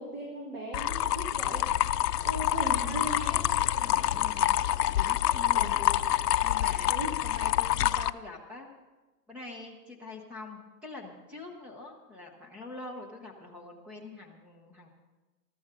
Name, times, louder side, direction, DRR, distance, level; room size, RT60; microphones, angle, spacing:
voice 1, 0.0-1.7 2.2-3.4 5.5-6.0 6.8-7.1, right 1 dB, 25° right, -2 dB, 2.4 m, -38 dB
sound 1, 0.7-8.1, left 12 dB, 75° left, 0.6 m, -27 dB
voice 2, 2.6-4.6 4.9-5.7 6.4-6.9 7.2-8.7 9.3-14.9, left 3 dB, 5° right, -1 dB, 0.7 m, -45 dB
20.0 x 13.5 x 3.7 m, 1.2 s
hypercardioid pair, 160°, 48 cm